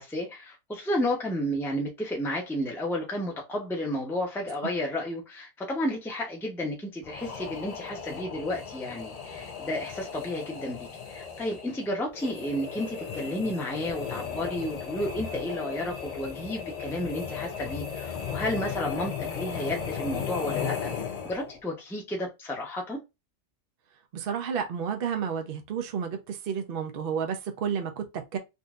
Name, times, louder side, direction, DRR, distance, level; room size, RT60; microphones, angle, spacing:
voice 1, 0.0-20.9 21.2-23.0, left 1 dB, ahead, 0.7 m, -32 dB
sound 1, 7.0-21.6, left 7 dB, 70° left, 0.3 m, -36 dB
voice 2, 24.1-28.4, right 7 dB, 55° right, 0.7 m, -31 dB
3.7 x 2.6 x 2.3 m
omnidirectional pair, 1.4 m